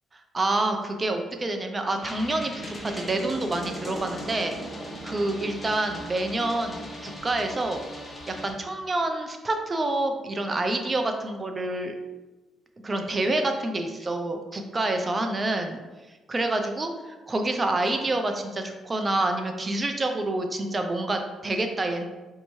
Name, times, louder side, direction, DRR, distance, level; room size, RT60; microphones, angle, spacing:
voice 1, 0.1-4.6 5.0-7.8 8.3-11.9 12.8-15.8 16.3-16.9 17.3-22.1, right 2 dB, 30° right, 5 dB, 0.5 m, -27 dB
sound 1, 2.0-8.5, equal, 20° left, 0.8 m, -38 dB
4.4 x 2.7 x 3.0 m, 1.2 s
cardioid pair, 90°, 0 cm